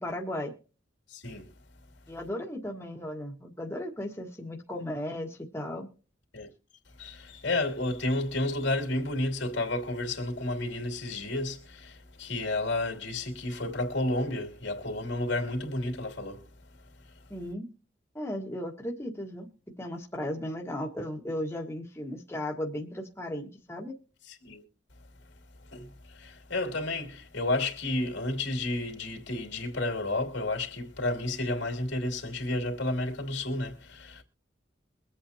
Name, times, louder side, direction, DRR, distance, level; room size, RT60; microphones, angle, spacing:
voice 1, 0.0-0.5 2.1-5.9 17.3-17.7 18.1-19.5 19.8-23.9, left 1 dB, 15° left, 1.6 m, -36 dB
voice 2, 1.1-1.5 6.3-6.5 7.0-16.5 17.0-17.1 24.3-24.6 25.6-34.2, left 2 dB, 75° left, 2.9 m, -31 dB
23.5 x 8.4 x 2.9 m
head